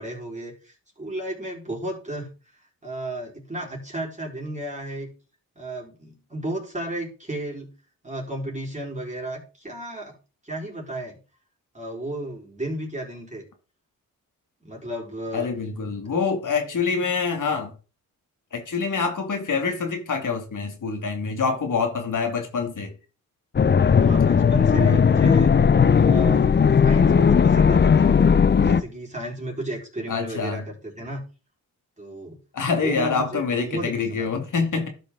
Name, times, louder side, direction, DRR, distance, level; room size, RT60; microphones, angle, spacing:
voice 1, 0.0-2.3 2.8-5.1 5.6-7.7 8.0-10.1 10.4-11.2 11.7-13.4 14.6-15.5 23.9-25.5 26.0-26.5 26.8-28.1 28.6-31.2 32.0-32.4 32.7-34.3, right 1 dB, 20° right, 4.3 m, -33 dB
voice 2, 15.3-17.7 18.5-22.9 30.1-30.6 32.5-34.9, left 5 dB, 60° left, 2.1 m, -26 dB
sound 1, 23.5-28.8, left 6 dB, 30° left, 0.6 m, -17 dB
12.5 x 5.4 x 3.8 m
cardioid pair, 65°, 35 cm